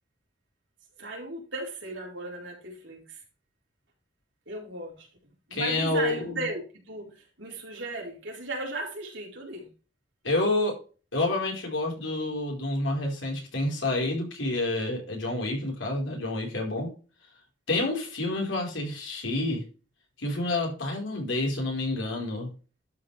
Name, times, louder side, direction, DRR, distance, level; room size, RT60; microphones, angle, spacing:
voice 1, 1.0-3.2 4.5-9.7, right 2 dB, 65° right, 4.4 m, -36 dB
voice 2, 5.5-6.4 10.2-10.8 11.1-16.9 17.7-19.6 20.2-22.5, left 2 dB, 75° left, 4.6 m, -28 dB
12.0 x 5.9 x 3.4 m
head